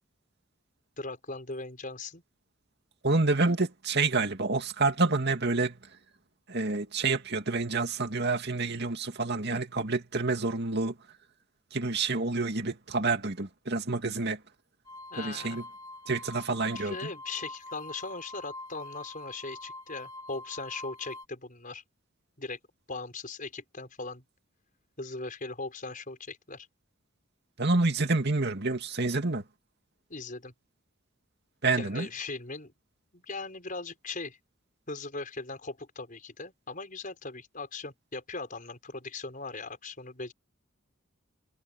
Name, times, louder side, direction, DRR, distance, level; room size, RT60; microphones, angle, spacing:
voice 1, 1.0-2.2 15.1-15.6 16.7-21.8 22.4-22.6 22.9-24.2 25.0-26.7 30.1-30.5 31.8-32.7 33.1-34.4 34.9-40.3, left 3 dB, 40° left, 5.9 m, -39 dB
voice 2, 3.0-5.8 6.5-10.9 11.7-14.4 15.2-15.6 16.1-17.0 27.6-29.4 31.6-32.1, right 3 dB, 55° right, 2.5 m, -28 dB
sound 1, 14.8-21.2, left 2 dB, 20° left, 2.9 m, -45 dB
head